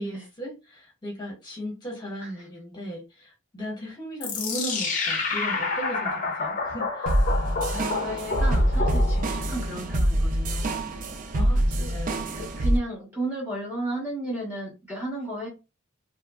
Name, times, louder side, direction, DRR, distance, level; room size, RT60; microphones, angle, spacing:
voice 1, 0.0-7.2 11.3-12.3, equal, 20° left, 1.0 m, -36 dB
sound 1, 4.2-9.5, left 4 dB, 40° left, 0.6 m, -29 dB
sound 2, 7.1-12.8, right 1 dB, 40° right, 0.4 m, -25 dB
voice 2, 7.5-10.9 11.8-11.9 12.3-15.5, right 1 dB, 10° right, 0.8 m, -33 dB
2.9 x 2.3 x 2.3 m
head